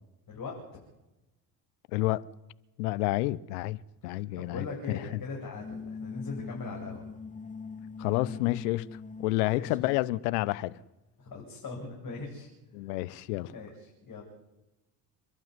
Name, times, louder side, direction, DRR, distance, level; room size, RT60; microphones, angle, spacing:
voice 1, 1.9-2.3 2.8-5.2 8.0-8.9 9.2-10.8 12.7-13.5, left 18 dB, 80° left, 0.9 m, -29 dB
voice 2, 4.0-7.1 9.5-9.7 11.2-12.5 13.5-14.2, left 3 dB, 45° left, 7.8 m, -40 dB
sound 1, 5.4-10.2, left 5 dB, 15° left, 1.4 m, -42 dB
28.5 x 12.0 x 9.9 m
hypercardioid pair, 55°, 46 cm